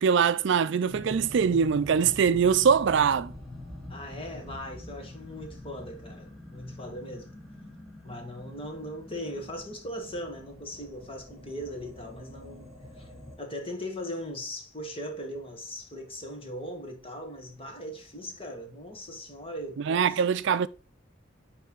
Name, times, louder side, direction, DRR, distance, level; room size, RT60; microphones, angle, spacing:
voice 1, 0.0-3.3 19.8-20.7, right 6 dB, 70° right, 0.4 m, -23 dB
sound 1, 0.9-13.4, left 1 dB, ahead, 2.0 m, -45 dB
voice 2, 3.9-7.3 8.0-12.7 13.0-13.1 13.4-20.2, equal, 30° left, 1.8 m, -39 dB
9.3 x 3.4 x 4.7 m
head